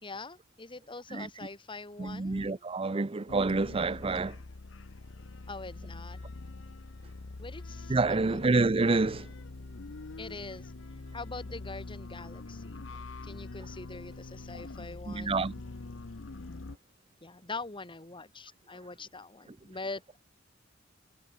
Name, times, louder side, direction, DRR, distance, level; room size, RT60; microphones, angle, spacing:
voice 1, 0.0-2.6 5.5-6.2 7.4-8.4 10.2-10.7 11.1-12.8 13.2-15.4 17.2-20.2, left 3 dB, 25° left, 2.3 m, -43 dB
voice 2, 2.0-4.4 7.9-9.3 15.1-15.5, right 3 dB, 30° right, 0.6 m, -28 dB
sound 1, 3.3-16.8, left 3 dB, 80° left, 0.9 m, -44 dB
head